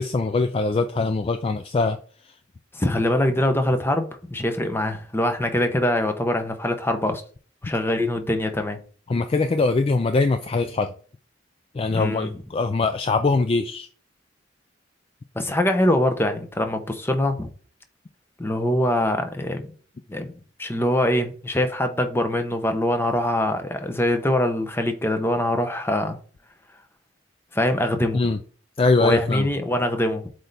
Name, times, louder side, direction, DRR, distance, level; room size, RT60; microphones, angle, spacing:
voice 1, 0.0-2.0 9.1-10.9 11.7-13.9 28.1-28.4 28.8-29.5, left 3 dB, 30° left, 0.3 m, -22 dB
voice 2, 2.7-7.2 7.6-8.8 11.9-12.3 15.3-17.5 18.4-19.7 20.1-20.3 20.6-26.2 27.5-28.2 29.0-30.3, left 1 dB, 15° left, 0.8 m, -23 dB
7.8 x 3.3 x 4.1 m
head